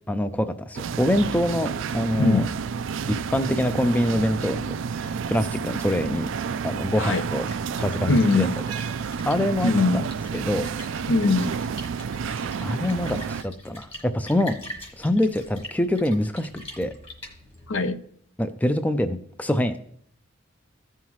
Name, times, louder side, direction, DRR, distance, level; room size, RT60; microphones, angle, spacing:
voice 1, 0.1-2.5 3.3-6.3 6.6-7.5 7.8-8.5 9.2-10.0 10.3-10.7 12.6-14.6 15.0-16.5 16.8-16.9 18.4-19.8, left 1 dB, 10° left, 0.4 m, -25 dB
sound 1, 0.7-13.4, right 6 dB, 70° right, 0.3 m, -30 dB
Splash splatter, 7.2-17.8, left 1 dB, 30° left, 1.6 m, -43 dB
voice 2, 8.1-8.5 9.6-10.0 11.1-11.6 17.7-18.0, left 3 dB, 70° left, 0.7 m, -21 dB
15.5 x 5.6 x 3.1 m
head